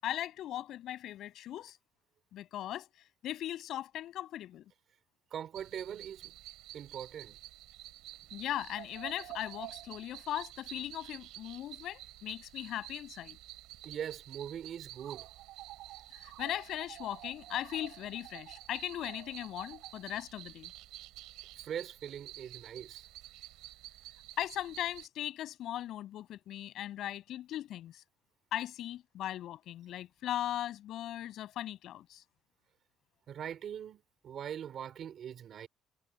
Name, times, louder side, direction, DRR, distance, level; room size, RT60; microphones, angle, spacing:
voice 1, 0.0-1.8 2.3-2.9 3.2-4.6 8.3-13.4 16.2-20.7 24.4-28.0 28.5-32.2, left 12 dB, 55° left, 7.4 m, -38 dB
voice 2, 5.3-6.2 6.7-7.4 13.8-15.3 21.7-23.0 33.3-35.7, right 9 dB, 45° right, 3.1 m, -41 dB
sound 1, 5.5-25.1, right 17 dB, 80° right, 4.6 m, -49 dB
cardioid pair, 160°, 0 cm